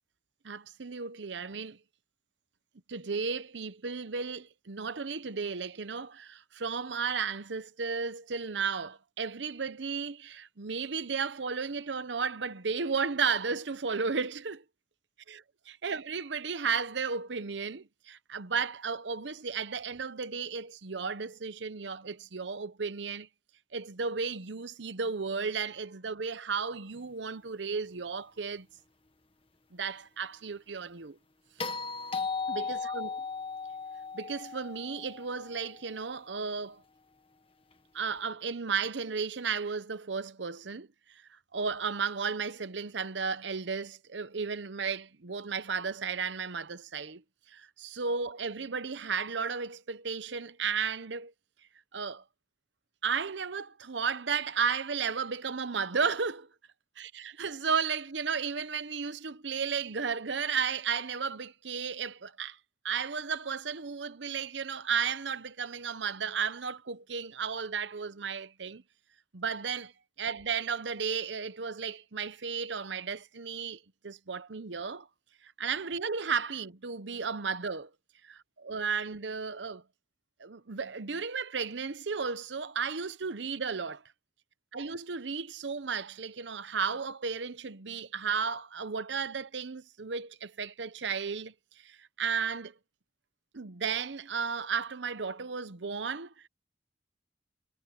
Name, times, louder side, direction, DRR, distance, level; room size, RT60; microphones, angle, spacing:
voice 1, 0.4-1.8 2.9-14.6 15.3-23.3 23.7-28.7 29.7-31.2 32.5-33.2 34.1-36.8 37.9-47.2 47.5-51.3 51.9-52.2 53.0-56.5 57.0-62.6 62.8-68.8 69.3-69.9 70.2-75.1 75.4-77.9 78.2-79.8 80.4-84.0 84.7-92.7 93.5-96.5, right 5 dB, 85° right, 0.9 m, -34 dB
sound 1, 31.6-35.9 38.1-38.2, left 5 dB, 30° left, 1.7 m, -36 dB
head